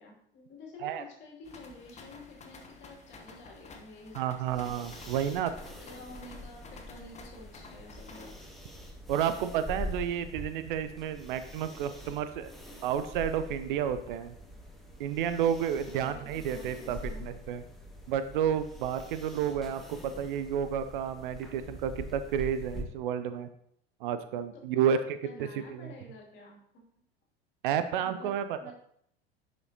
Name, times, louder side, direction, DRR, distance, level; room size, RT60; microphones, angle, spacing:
voice 1, 0.0-4.3 5.3-5.5 5.8-8.3 15.8-17.2 24.5-26.8 27.8-28.3 28.6-28.7, left 2 dB, 35° left, -1 dB, 2.7 m, -50 dB
sound 1, 1.4-8.5, left 3 dB, 20° left, 1.0 m, -51 dB
voice 2, 4.1-5.5 9.1-12.5 12.8-14.3 15.0-17.6 18.1-23.5 24.0-25.9 27.6-28.7, right 9 dB, 55° right, 11 dB, 0.6 m, -31 dB
sound 2, 4.5-22.8, left 1 dB, ahead, 1.4 m, -44 dB
10.5 x 5.1 x 2.8 m, 0.70 s
figure-of-eight pair, 80°, 31 cm